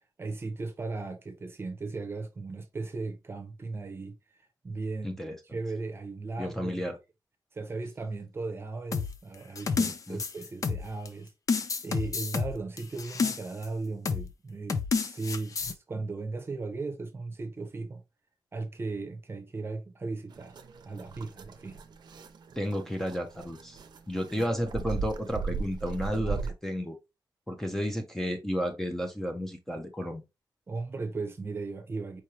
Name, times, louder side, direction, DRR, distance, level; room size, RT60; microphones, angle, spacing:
voice 1, 0.2-7.0 7.5-11.3 11.8-18.0 18.5-20.6 20.8-21.8 24.4-24.5 26.1-26.5 30.7-32.2, right 3 dB, 30° right, 0.8 m, -37 dB
voice 2, 5.0-5.6 6.4-7.0 9.8-10.2 22.6-23.8 24.1-27.0 27.5-30.2, equal, 5° left, 0.7 m, -32 dB
sound 1, 8.9-11.1 11.5-13.7 14.1-14.3 14.7-15.7, left 5 dB, 45° left, 0.5 m, -30 dB
sound 2, 20.3-26.5, right 5 dB, 65° right, 0.6 m, -38 dB
4.6 x 3.2 x 2.8 m
wide cardioid pair, 155°, 8 cm